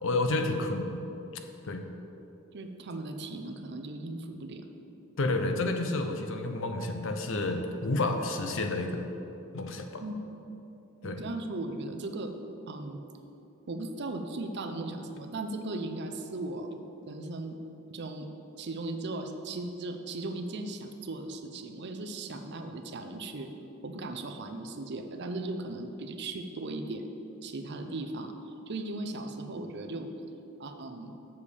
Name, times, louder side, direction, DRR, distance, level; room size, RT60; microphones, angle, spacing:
voice 1, 0.0-1.0 1.6-1.8 5.2-9.1 9.5-10.0 11.0-11.2, left 2 dB, 60° left, 5 dB, 0.7 m, -30 dB
voice 2, 2.5-4.7 10.0-10.4 11.0-12.3 12.7-13.0 13.7-16.8 17.1-17.6 17.9-18.3 18.6-23.5 23.8-27.1 27.4-30.1 30.6-31.1, right 2 dB, 50° right, 6 dB, 0.6 m, -37 dB
7.1 x 7.0 x 4.9 m, 2.9 s
head